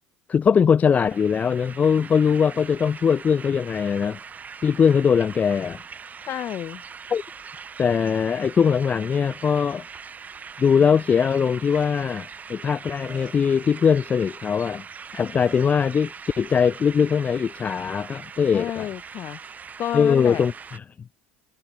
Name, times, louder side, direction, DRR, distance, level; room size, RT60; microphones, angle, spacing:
voice 1, 0.3-4.2 4.6-5.8 7.1-7.2 7.8-9.8 10.6-14.8 15.1-18.9 19.9-20.8, left 7 dB, 30° left, 0.4 m, -21 dB
sound 1, 0.9-20.8, right 6 dB, 30° right, 4.7 m, -41 dB
voice 2, 6.3-6.8 18.5-19.4 19.8-20.4, left 12 dB, 50° left, 3.4 m, -30 dB
Burping eructation, 11.4-11.5 11.7-11.9 12.7-12.8 13.0-13.5 14.9-15.0 15.4-15.8, equal, ahead, 3.3 m, -45 dB
hypercardioid pair, 70°, 5 cm